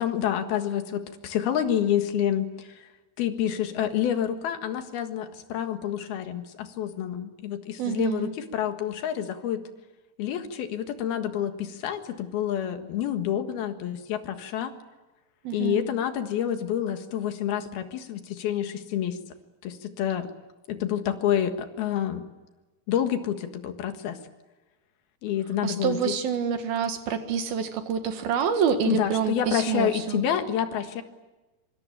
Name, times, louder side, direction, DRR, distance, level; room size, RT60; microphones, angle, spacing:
voice 1, 0.0-2.9 3.2-9.6 10.2-14.7 15.5-19.2 19.6-20.3 20.7-22.2 22.9-24.2 25.2-26.2 28.9-31.0, left 10 dB, 90° left, 7 dB, 3.6 m, -28 dB
voice 2, 7.8-8.3 15.4-15.8 25.6-30.2, right 7 dB, 75° right, 7 dB, 3.6 m, -27 dB
25.0 x 25.0 x 9.0 m, 1.1 s
omnidirectional pair, 4.3 m